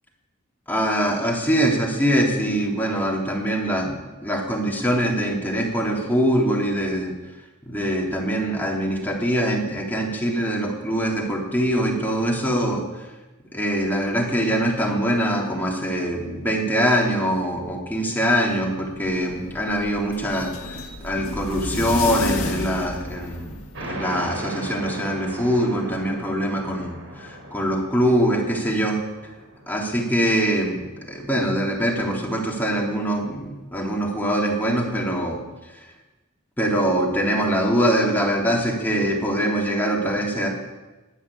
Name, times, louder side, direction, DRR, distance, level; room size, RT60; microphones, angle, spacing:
voice 1, 0.7-7.1 7.7-13.1 13.5-29.0 29.7-35.4 36.6-40.5, equal, 10° left, -2 dB, 3.4 m, -23 dB
sound 1, 18.9-23.9, left 2 dB, 90° left, 2.2 m, -31 dB
sound 2, 23.7-30.9, right 1 dB, 65° right, 4.4 m, -37 dB
12.5 x 11.5 x 10.0 m, 1.1 s
head